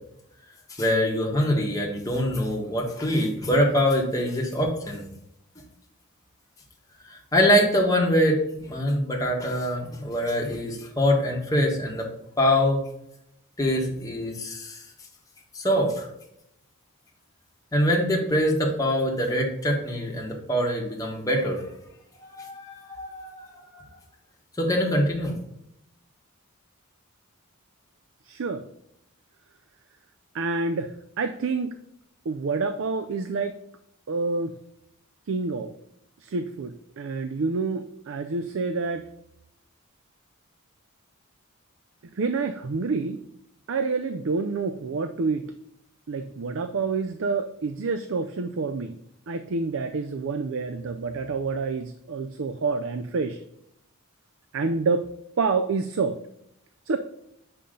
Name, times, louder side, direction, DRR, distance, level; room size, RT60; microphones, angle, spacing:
voice 1, 0.7-5.0 7.0-12.1 12.4-12.8 13.6-14.8 15.5-16.1 17.7-21.6 22.3-23.5 23.7-23.8 24.6-25.4, equal, 15° left, -1 dB, 1.5 m, -24 dB
voice 2, 28.3-28.6 30.3-31.8 32.3-33.6 34.1-34.5 35.3-35.7 36.2-39.0 42.2-43.2 43.7-45.4 46.1-49.0 49.3-53.4 54.5-55.1 55.4-56.2 56.9-57.0, right 4 dB, 60° right, 10 dB, 0.4 m, -28 dB
7.1 x 5.6 x 3.8 m, 0.79 s
head